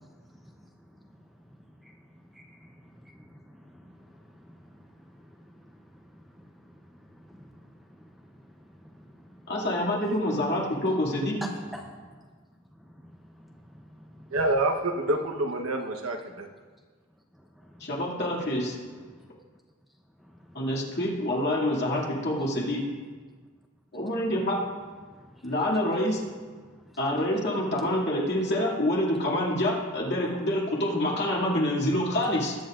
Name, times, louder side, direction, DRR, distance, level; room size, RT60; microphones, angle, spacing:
voice 1, 0.0-9.5 11.4-14.4 17.3-18.1 18.8-19.3 20.1-21.0 25.0-25.6 26.5-27.0, equal, ahead, 1 dB, 0.7 m, -50 dB
voice 2, 9.5-11.4 17.8-18.8 20.5-22.8 23.9-24.6 25.4-26.2 27.0-32.6, left 1 dB, 55° left, -4 dB, 2.5 m, -27 dB
voice 3, 14.3-16.5, right 2 dB, 80° right, 4 dB, 1.1 m, -27 dB
20.5 x 10.0 x 2.5 m, 1.5 s
head